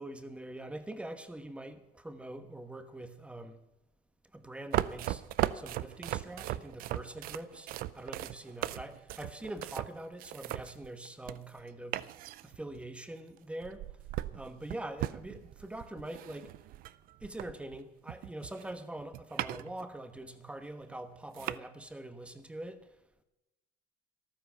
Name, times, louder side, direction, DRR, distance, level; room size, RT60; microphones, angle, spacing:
voice 1, 0.0-3.6 4.3-5.2 5.5-7.7 7.9-12.0 12.4-13.9 14.3-16.5 17.2-22.9, right 1 dB, 5° right, 1.1 m, -44 dB
sound 1, 4.7-11.6 11.9-12.9 13.6-17.8 18.1-19.8 20.2-20.3 20.9-21.0 21.3-21.6, right 14 dB, 70° right, 0.5 m, -37 dB
14.0 x 12.5 x 5.8 m
cardioid pair, 140°, 16 cm